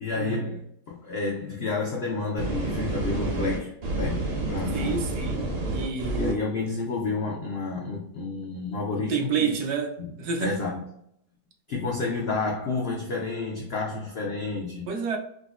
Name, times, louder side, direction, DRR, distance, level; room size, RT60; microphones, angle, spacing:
voice 1, 0.0-5.0 6.2-9.5 10.0-10.1 10.4-10.8 11.7-14.8, left 3 dB, 80° left, 0.5 m, -30 dB
sound 1, 2.4-6.3, right 2 dB, 50° right, 0.8 m, -29 dB
voice 2, 4.7-6.5 8.9-10.6 14.9-15.2, right 5 dB, 80° right, 1.2 m, -29 dB
4.9 x 2.0 x 2.3 m
omnidirectional pair, 1.7 m